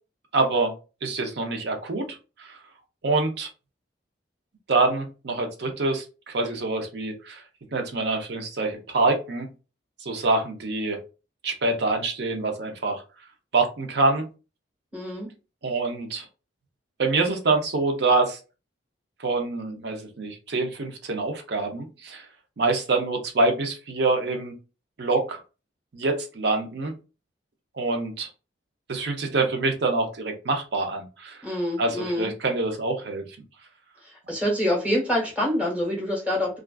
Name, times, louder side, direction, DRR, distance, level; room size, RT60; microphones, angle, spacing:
voice 1, 0.3-0.7 1.0-2.6 3.0-3.5 4.7-7.4 7.7-9.5 10.0-11.0 11.4-13.0 13.5-14.3 15.6-16.2 17.0-18.4 19.2-22.3 22.6-24.5 25.0-25.4 25.9-26.9 27.8-28.3 28.9-31.4 31.8-33.2, right 3 dB, 60° right, 4 dB, 0.5 m, -25 dB
voice 2, 14.9-15.3 31.4-32.3 34.3-36.6, equal, 5° right, -4 dB, 1.0 m, -26 dB
2.4 x 2.3 x 2.2 m, 0.32 s
head